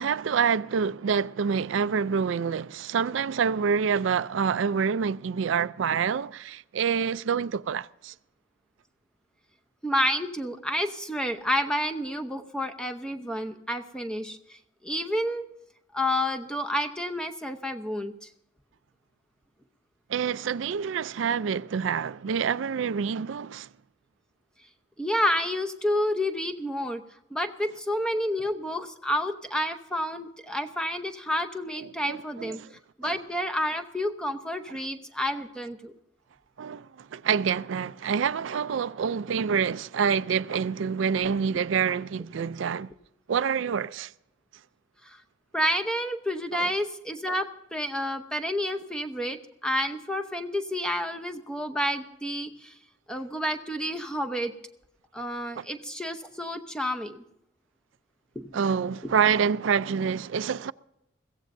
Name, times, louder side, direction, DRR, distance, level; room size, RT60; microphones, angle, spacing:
voice 1, 0.0-8.1 20.1-23.7 31.8-32.7 33.0-33.1 36.6-42.9 43.3-44.1 46.5-46.7 55.6-55.7 58.5-60.7, right 6 dB, 75° right, 0.4 m, -27 dB
voice 2, 9.8-14.6 14.8-15.4 15.9-18.3 25.0-27.0 27.3-32.6 33.0-35.9 45.0-45.2 45.5-52.7 53.1-54.5 55.1-57.2 58.3-58.5, equal, 5° left, 0.8 m, -29 dB
22.0 x 16.0 x 2.6 m
head